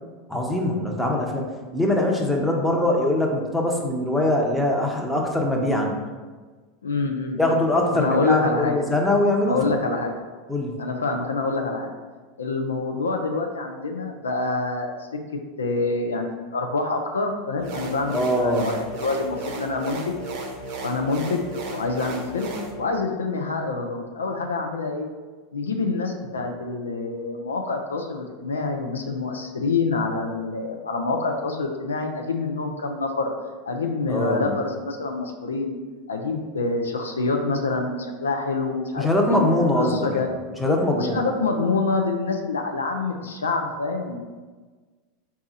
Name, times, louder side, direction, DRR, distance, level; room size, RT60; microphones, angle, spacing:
voice 1, 0.3-5.9 7.4-9.7 10.5-10.7 18.1-18.7 34.1-34.6 39.0-40.3 40.6-41.2, left 1 dB, 5° left, 0 dB, 0.7 m, -22 dB
voice 2, 6.8-7.5 7.9-8.7 9.5-10.1 10.8-11.9 12.4-14.9 15.6-20.1 20.8-21.4 21.7-25.1 25.5-33.3 33.7-35.8 36.1-39.5 39.8-40.4 40.9-44.2, left 3 dB, 90° left, 3 dB, 0.4 m, -26 dB
sound 1, 17.6-22.7, right 2 dB, 55° right, 0.8 m, -35 dB
4.0 x 2.4 x 3.9 m, 1.4 s
hypercardioid pair, 90°, 0 cm